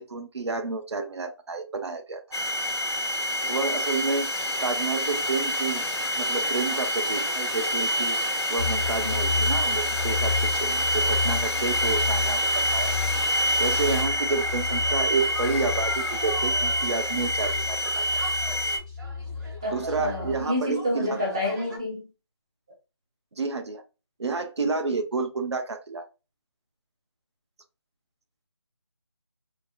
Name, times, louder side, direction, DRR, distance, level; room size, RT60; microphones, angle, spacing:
voice 1, 0.0-2.2 3.4-4.3 4.6-5.8 6.2-8.2 8.5-12.9 13.6-18.0 19.7-21.2 23.4-23.8 24.2-26.1, right 4 dB, 70° right, 0.6 m, -30 dB
sound 1, 2.3-18.8, equal, 75° left, 1.4 m, -27 dB
sound 2, 8.6-20.4, left 5 dB, 15° left, 0.9 m, -32 dB
sound 3, 14.0-21.8, right 1 dB, 40° right, 1.4 m, -41 dB
voice 2, 19.6-22.1, left 1 dB, 10° right, 0.4 m, -29 dB
3.3 x 2.6 x 2.3 m
figure-of-eight pair, 165°, 15 cm